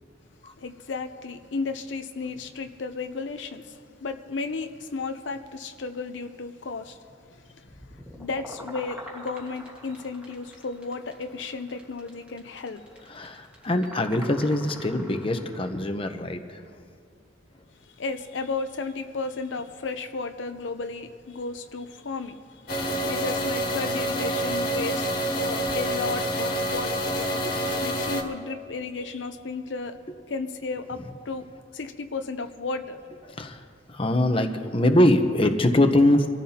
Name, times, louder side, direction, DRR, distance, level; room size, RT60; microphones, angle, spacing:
voice 1, 0.6-7.0 7.3-13.0 17.8-27.1 27.4-29.9 30.3-31.4 31.7-33.0, left 3 dB, 70° left, 7 dB, 0.6 m, -34 dB
sound 1, 7.7-15.8, equal, 5° right, 1.6 m, -44 dB
voice 2, 13.1-16.6 27.4-27.5 33.3-33.6 33.9-36.3, left 1 dB, 30° left, 6 dB, 0.8 m, -23 dB
sound 2, 22.7-28.2, equal, 50° left, 1.8 m, -27 dB
25.0 x 14.0 x 2.9 m, 2.2 s
head